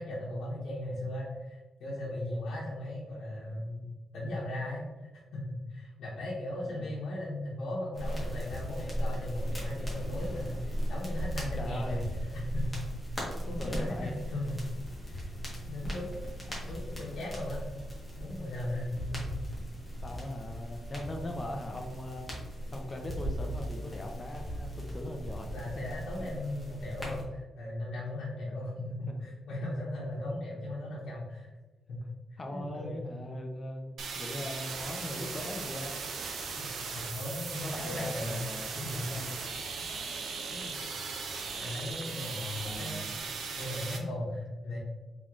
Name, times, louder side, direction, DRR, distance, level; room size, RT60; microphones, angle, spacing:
voice 1, 0.0-4.8 5.3-12.0 12.3-12.8 13.4-14.6 15.0-15.2 15.7-16.1 16.6-17.6 18.2-19.4 25.5-31.5 31.9-32.0 32.3-33.0 36.5-36.7 36.9-39.1 40.5-40.7 41.6-43.0 43.6-44.8, left 1 dB, 80° left, -7 dB, 1.1 m, -37 dB
sound 1, 7.9-27.2, equal, 10° left, 1.4 m, -37 dB
voice 2, 11.6-12.1 13.6-14.2 20.0-22.3 22.7-25.5 26.2-26.3 29.1-29.2 32.4-36.0 37.6-39.4 42.6-43.1, left 1 dB, 30° left, 3 dB, 0.7 m, -40 dB
sound 2, 34.0-44.0, right 4 dB, 75° right, 0.6 m, -38 dB
3.8 x 3.7 x 3.1 m, 1.2 s
cardioid pair, 130°, 0 cm